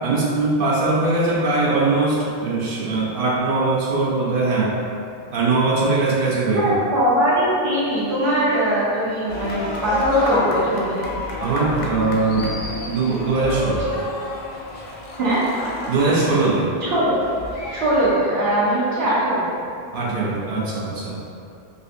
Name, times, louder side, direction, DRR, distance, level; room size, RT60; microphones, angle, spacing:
voice 1, 0.0-4.7 5.3-6.7 11.4-12.6 12.9-13.9 15.9-16.7 19.9-21.2, right 3 dB, 65° right, -5 dB, 0.7 m, -21 dB
voice 2, 6.5-11.1 15.2-15.5 16.8-17.1 17.7-19.6, right 1 dB, 85° right, -8 dB, 1.2 m, -21 dB
sound 1, 9.3-18.1, left 2 dB, 55° left, 0.5 m, -30 dB
3.6 x 2.5 x 2.5 m, 2.4 s
omnidirectional pair, 1.0 m